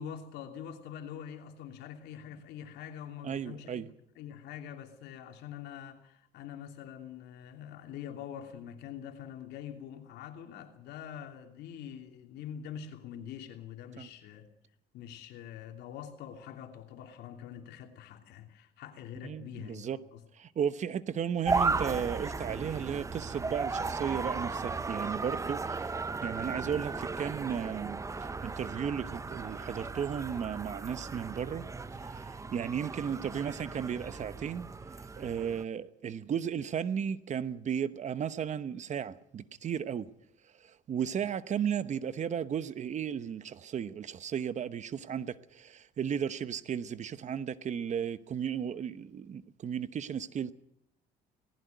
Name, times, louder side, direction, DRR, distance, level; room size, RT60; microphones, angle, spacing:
voice 1, 0.0-3.8 4.2-14.5 14.9-20.2, left 9 dB, 80° left, 2.9 m, -45 dB
voice 2, 3.2-3.9 14.0-14.1 19.2-20.0 20.3-25.9 26.2-28.0 28.4-31.7 32.0-34.7 35.2-40.1 40.6-50.5, right 8 dB, 45° right, 1.0 m, -35 dB
sound 1, 21.5-35.6, right 4 dB, 20° right, 0.8 m, -36 dB
19.0 x 16.0 x 9.3 m
cardioid pair, 110°, 17 cm